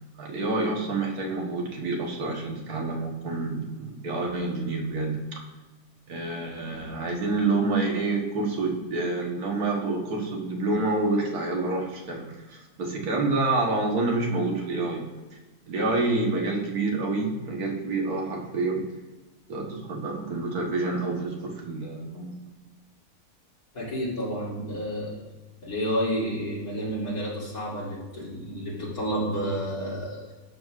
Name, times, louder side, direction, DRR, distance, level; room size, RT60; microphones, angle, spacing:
voice 1, 0.2-5.2 6.1-15.1 15.7-18.8 19.5-22.3, right 3 dB, 85° right, 0 dB, 1.8 m, -28 dB
voice 2, 23.7-25.2 25.6-30.3, equal, 85° left, -6 dB, 3.2 m, -30 dB
12.0 x 6.3 x 2.4 m, 1.2 s
omnidirectional pair, 1.5 m